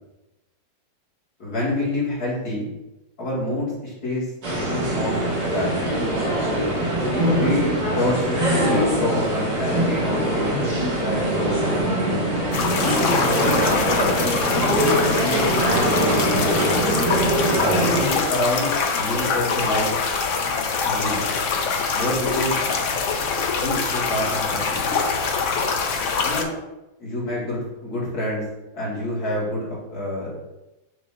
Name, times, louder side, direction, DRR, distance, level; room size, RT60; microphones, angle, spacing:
voice 1, 1.4-2.7 3.2-4.2 4.5-6.1 7.1-10.6 11.0-11.9 12.6-14.2 14.7-16.8 17.8-19.9 20.8-21.2 21.9-22.6 23.5-24.8 26.2-26.5 27.0-28.4 28.7-30.4, left 1 dB, 55° left, -6 dB, 2.6 m, -27 dB
sound 1, 4.4-18.1, right 1 dB, 65° right, 2.4 m, -22 dB
sound 2, 12.5-26.4, left 5 dB, 70° left, 0.7 m, -24 dB
6.7 x 2.9 x 5.4 m, 0.99 s
omnidirectional pair, 2.0 m